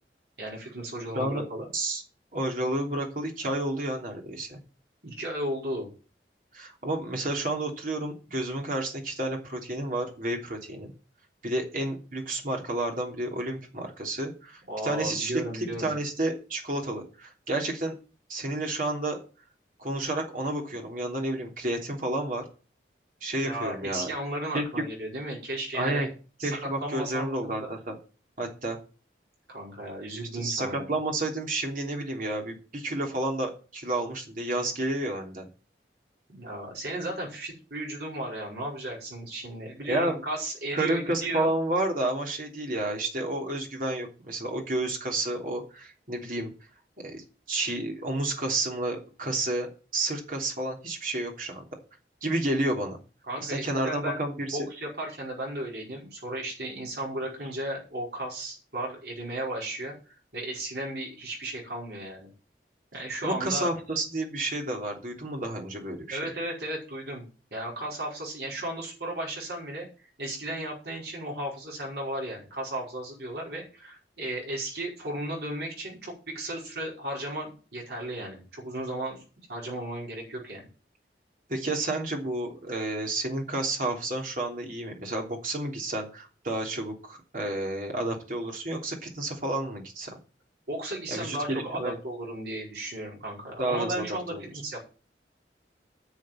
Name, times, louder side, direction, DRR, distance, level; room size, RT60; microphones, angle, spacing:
voice 1, 0.4-1.7 5.0-5.9 14.7-15.9 23.4-26.1 26.4-27.7 29.5-30.9 36.3-41.5 53.3-54.2 54.5-59.9 60.3-62.3 62.9-63.7 66.1-67.2 67.5-79.2 79.5-80.7 90.7-94.8, right 1 dB, 65° right, -3 dB, 5.3 m, -35 dB
voice 2, 1.1-1.4 1.7-2.0 2.3-4.6 6.5-10.9 11.4-18.0 18.3-19.2 19.8-22.4 23.2-24.1 24.5-24.6 25.7-26.1 26.4-28.0 28.4-28.8 30.3-35.5 39.9-40.2 40.7-46.5 47.0-51.6 52.2-53.0 53.4-54.6 63.2-66.2 81.5-90.1 91.1-92.0 93.6-94.0 94.3-94.4, right 2 dB, 50° right, 1 dB, 3.1 m, -30 dB
10.5 x 6.5 x 9.0 m, 0.36 s
head